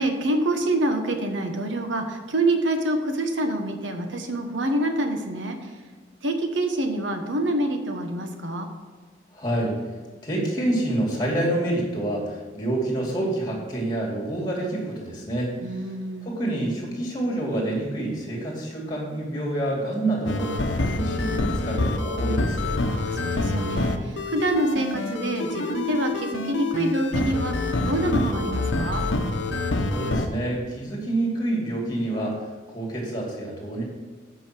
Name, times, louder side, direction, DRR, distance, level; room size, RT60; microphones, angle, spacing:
voice 1, 0.0-5.6 6.2-8.7 15.6-16.3 22.9-27.5 27.8-29.0, right 1 dB, 90° right, 5 dB, 1.2 m, -26 dB
voice 2, 9.3-9.8 10.2-15.5 16.2-22.7 29.9-33.8, right 1 dB, 20° left, -2 dB, 2.5 m, -27 dB
sound 1, 20.3-30.3, left 2 dB, 85° left, 0.8 m, -26 dB
8.8 x 5.5 x 6.1 m, 1.4 s
head